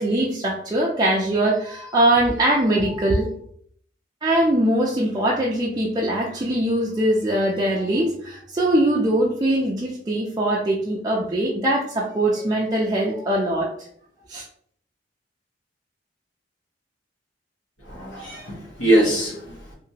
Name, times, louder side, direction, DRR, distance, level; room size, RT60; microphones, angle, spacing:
voice 1, 0.0-3.3 4.2-13.7 14.3-14.4, right 1 dB, 20° right, -4 dB, 0.4 m, -22 dB
voice 2, 17.9-19.7, right 1 dB, 80° left, -2 dB, 1.0 m, -22 dB
2.8 x 2.5 x 2.7 m, 0.62 s
head